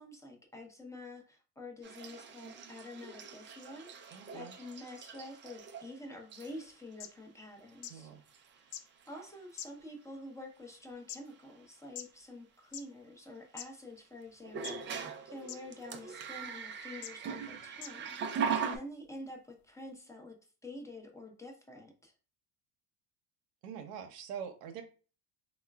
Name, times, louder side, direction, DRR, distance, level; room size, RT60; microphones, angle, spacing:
voice 1, 0.0-8.1 8.6-8.7 9.1-20.3 20.6-22.1, left 1 dB, 5° left, 1 dB, 0.7 m, -48 dB
sound 1, 1.8-5.9 6.3-6.7 7.7-7.8 8.3-8.7 9.0-9.3 11.3-11.4 14.4-18.8, right 6 dB, 25° right, 0.4 m, -40 dB
voice 2, 4.1-4.5 7.9-8.2 23.6-24.8, right 8 dB, 80° right, 5 dB, 0.7 m, -44 dB
sound 2, 6.7-6.8 7.0-7.1 7.8-7.9 8.7-8.8 9.6-10.0 10.7-11.2 12.0-12.1 12.6-12.8 13.6-13.7 14.6-14.9 15.5-15.6 16.4-16.5 17.0-17.1 17.8-17.9 18.7-18.8, left 10 dB, 80° left, 0.5 m, -43 dB
3.7 x 2.1 x 2.2 m, 0.36 s
supercardioid pair, 90°, 46 cm